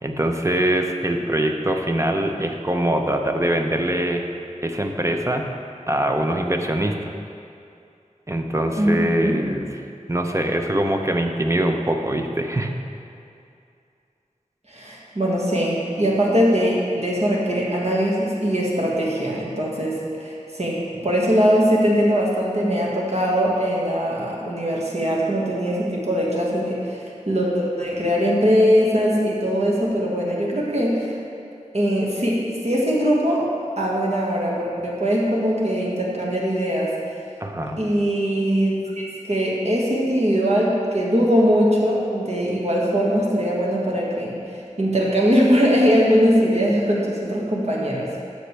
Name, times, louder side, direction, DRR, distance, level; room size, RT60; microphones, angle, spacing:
voice 1, 0.0-4.2 4.6-5.5 5.9-7.1 8.3-9.7 10.1-12.7 37.4-37.8, right 1 dB, 20° right, 3 dB, 0.8 m, -23 dB
voice 2, 8.8-9.4 14.7-31.1 31.7-33.5 33.8-36.9 37.8-44.4 44.8-48.1, equal, 55° right, -4 dB, 1.9 m, -21 dB
13.5 x 6.6 x 3.4 m, 2.5 s
wide cardioid pair, 50°, 13 cm